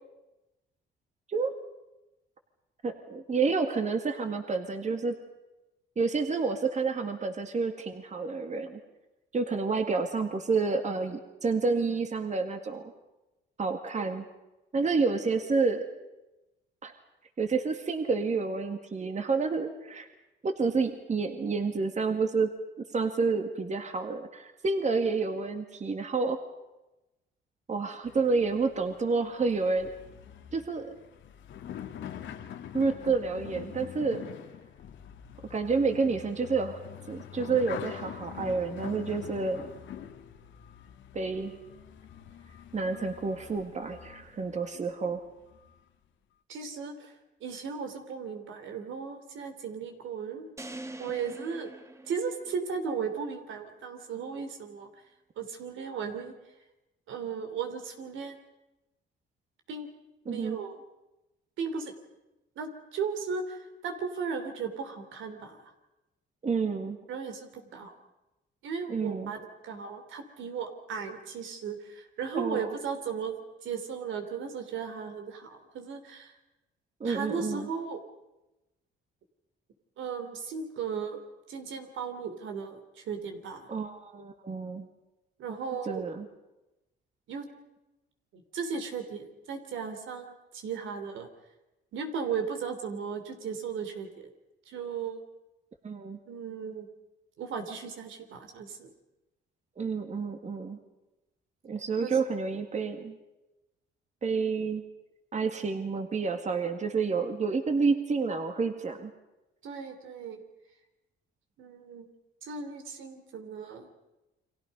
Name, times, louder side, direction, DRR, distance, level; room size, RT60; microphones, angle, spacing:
voice 1, 2.8-5.1 6.0-8.8 9.3-12.8 13.6-14.3 14.7-15.9 16.8-16.9 17.4-20.1 20.4-22.5 22.9-26.4 27.7-29.9 30.5-31.0 32.7-34.2 35.5-36.8 37.1-39.7 41.1-41.5 42.7-45.2 60.3-60.6 66.4-67.0 68.9-69.3 72.3-72.7 77.0-77.7 83.7-84.9 85.9-86.3 95.8-96.2 99.8-100.8 101.6-103.2 104.2-104.8 105.3-109.1, right 4 dB, 35° right, 6 dB, 2.1 m, -29 dB
sound 1, 28.0-44.7 45.3-45.8, left 9 dB, 70° left, 1.8 m, -44 dB
voice 2, 46.5-47.1 47.4-50.5 51.0-51.7 52.0-54.9 55.4-56.3 57.1-58.4 59.7-59.9 60.2-60.8 61.6-61.9 62.6-65.6 67.1-67.9 68.6-76.3 77.0-78.0 80.0-81.2 81.5-83.7 85.4-86.0 87.3-87.5 88.3-91.3 91.9-94.1 94.7-95.2 96.3-96.9 97.4-98.9 102.0-102.1 109.6-110.4 111.6-112.1 112.4-113.9, right 6 dB, 80° right, 6 dB, 3.2 m, -36 dB
sound 2, 50.6-52.9, right 1 dB, 15° right, 1.4 m, -44 dB
29.5 x 24.0 x 5.5 m, 1.0 s
cardioid pair, 90°, 20 cm